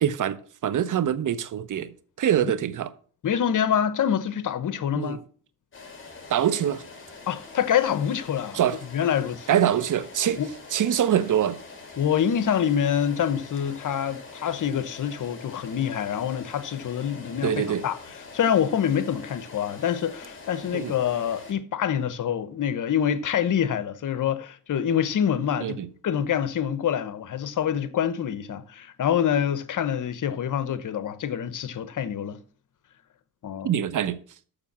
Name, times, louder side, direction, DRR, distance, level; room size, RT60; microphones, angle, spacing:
voice 1, 0.0-1.9 2.2-2.9 4.9-5.2 6.3-6.8 8.5-8.8 9.5-10.4 10.7-11.6 17.4-17.8 20.7-20.9 25.6-25.9 33.6-34.2, right 10 dB, 60° right, 0.9 m, -24 dB
voice 2, 3.2-5.2 7.3-8.6 8.9-9.6 10.4-10.5 12.0-18.0 18.3-25.8 26.0-32.4 33.4-33.7, left 9 dB, 60° left, 1.1 m, -26 dB
sound 1, 5.7-21.5, left 4 dB, 35° left, 3.3 m, -44 dB
6.9 x 6.8 x 7.1 m
cardioid pair, 80°, 35 cm